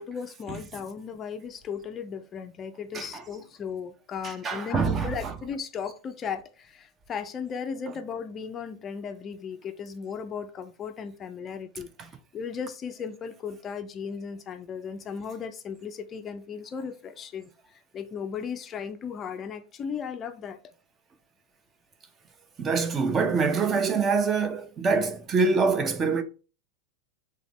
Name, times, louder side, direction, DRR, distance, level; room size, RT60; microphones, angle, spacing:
voice 1, 0.0-11.9 12.3-17.5 17.9-20.6, left 6 dB, 25° left, 0.4 m, -36 dB
voice 2, 4.2-5.3 22.6-26.2, right 4 dB, 25° right, 0.6 m, -25 dB
3.8 x 3.2 x 3.2 m
figure-of-eight pair, 90°, 0 cm